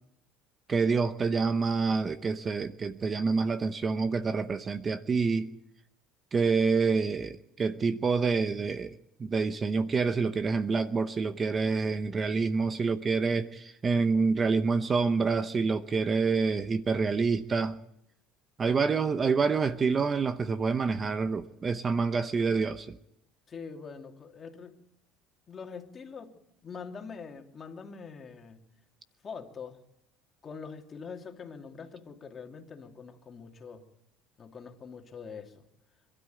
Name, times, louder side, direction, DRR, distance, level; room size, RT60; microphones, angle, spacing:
voice 1, 0.7-5.5 6.3-8.9 9.2-17.8 18.6-23.0, right 4 dB, 25° right, 12 dB, 0.8 m, -27 dB
voice 2, 23.5-24.8 25.5-28.7 29.2-29.8 30.4-33.9 34.4-35.6, left 5 dB, 30° left, 3 dB, 2.7 m, -44 dB
26.0 x 13.0 x 9.3 m, 0.80 s
cardioid pair, 115°, 0 cm